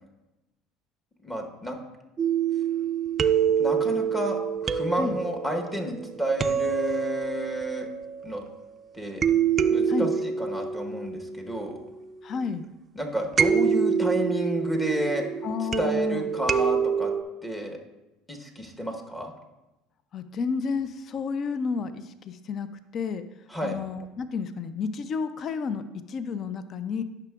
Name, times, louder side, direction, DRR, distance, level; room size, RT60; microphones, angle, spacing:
voice 1, 1.2-1.8 3.6-7.9 8.2-8.4 8.9-9.3 9.7-11.8 12.9-15.3 15.6-17.1 17.4-17.8 18.3-19.3 23.5-23.8, equal, 10° left, 2 dB, 1.0 m, -31 dB
sound 1, 2.2-8.6 9.2-12.2 13.4-17.2, right 7 dB, 30° right, 0.3 m, -26 dB
voice 2, 12.2-12.6 15.4-16.3 20.1-22.7 22.9-23.2 23.6-27.0, left 5 dB, 45° left, 11 dB, 0.4 m, -31 dB
10.5 x 5.7 x 2.3 m, 1.0 s
supercardioid pair, 100°, 0 cm